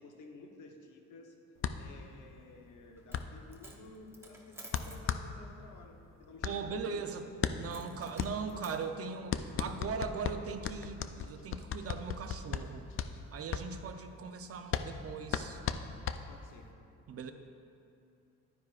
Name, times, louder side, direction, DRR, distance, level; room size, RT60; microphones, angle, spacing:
voice 1, 0.0-1.4 1.7-7.1 16.3-16.7, left 3 dB, 80° left, 3 dB, 1.0 m, -53 dB
sound 1, 1.6-16.7, left 8 dB, 45° left, 0.4 m, -38 dB
Coin (dropping), 3.0-3.3 3.5-5.1 7.7-8.8, right 1 dB, 10° right, 1.0 m, -52 dB
voice 2, 6.4-7.3 7.6-12.9 13.3-15.6 17.1-17.3, right 5 dB, 50° right, 7 dB, 0.7 m, -39 dB
11.0 x 9.6 x 2.5 m, 2.6 s
cardioid pair, 90°, 30 cm